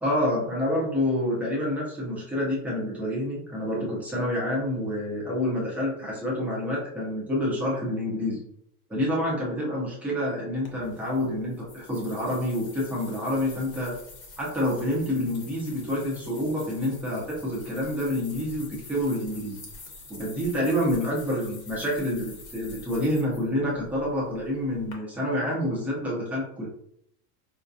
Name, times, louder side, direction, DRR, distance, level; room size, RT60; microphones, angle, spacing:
voice 1, 0.0-8.4 8.9-13.9 14.4-19.6 20.1-26.7, left 1 dB, 5° right, -6 dB, 0.4 m, -28 dB
sound 1, 10.7-24.9, left 3 dB, 25° left, 0.7 m, -47 dB
4.9 x 2.2 x 2.5 m, 0.72 s
supercardioid pair, 160°, 45 cm